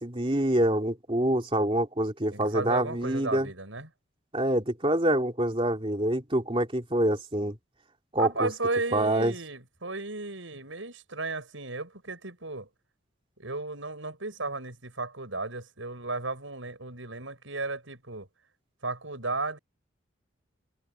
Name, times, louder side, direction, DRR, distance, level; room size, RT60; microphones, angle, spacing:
voice 1, 0.0-3.5 4.3-7.6 8.1-8.5 8.9-9.3, right 1 dB, 25° right, 2.9 m, -26 dB
voice 2, 2.3-3.9 8.2-12.7 13.4-18.3 18.8-19.6, right 3 dB, 80° right, 6.6 m, -34 dB
head